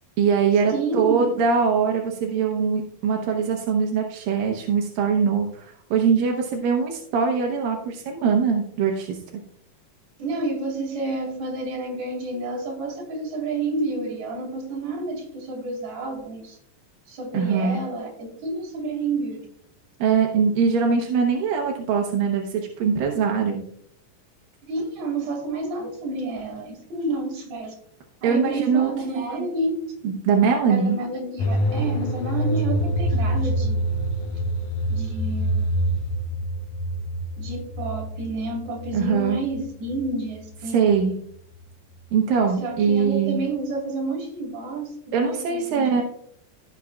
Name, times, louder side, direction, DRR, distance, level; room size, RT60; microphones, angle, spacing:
voice 1, 0.2-9.2 17.3-17.8 20.0-23.6 28.2-29.5 30.0-31.0 38.9-39.4 40.7-41.1 42.1-43.4 45.1-46.0, right 6 dB, 85° right, 1 dB, 2.7 m, -22 dB
voice 2, 0.7-1.3 10.2-16.6 17.1-19.5 24.6-27.7 28.2-29.8 30.7-33.8 34.9-35.9 37.4-41.0 42.6-46.0, right 2 dB, 60° right, 0 dB, 3.7 m, -30 dB
sound 1, 31.4-41.3 41.5-41.6, right 1 dB, 75° left, 2.1 m, -26 dB
15.5 x 6.7 x 2.4 m, 0.67 s
omnidirectional pair, 3.9 m